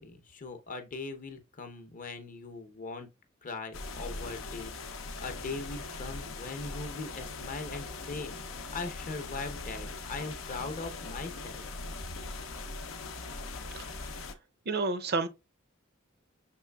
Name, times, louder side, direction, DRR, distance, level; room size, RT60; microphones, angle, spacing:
voice 1, 0.0-3.1 3.4-4.8 5.2-8.3 8.7-11.6, left 3 dB, 40° left, 0.7 m, -40 dB
sound 1, 3.7-14.3, left 3 dB, 90° left, 0.6 m, -40 dB
voice 2, 13.7-14.1 14.7-15.3, right 3 dB, 50° right, 0.6 m, -31 dB
6.1 x 3.2 x 2.2 m
head